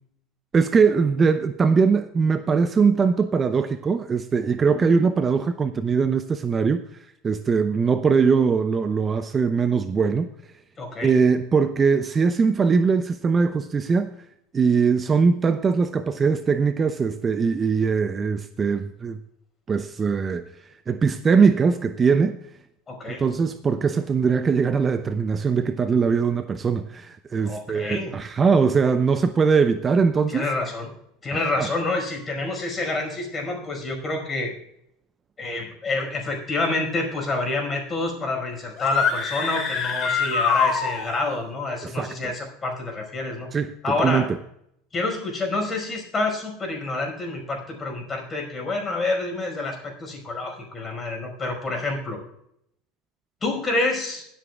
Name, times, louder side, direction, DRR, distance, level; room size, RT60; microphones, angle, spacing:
voice 1, 0.5-6.8 7.2-10.3 11.0-14.1 14.5-19.2 19.7-20.4 20.9-22.4 23.1-30.4 31.3-31.7 41.8-42.3 43.5-43.7 44.0-44.4, right 5 dB, 25° right, 10 dB, 0.6 m, -21 dB
voice 2, 10.8-11.1 22.9-23.2 27.4-28.2 30.3-30.9 31.2-34.5 35.4-43.5 43.8-44.3 44.9-52.2 53.4-54.3, left 2 dB, 25° left, 2 dB, 5.2 m, -28 dB
sound 1, 38.8-41.4, left 5 dB, 40° left, 3.2 m, -24 dB
22.5 x 8.0 x 2.3 m, 0.75 s
hypercardioid pair, 90°, 0 cm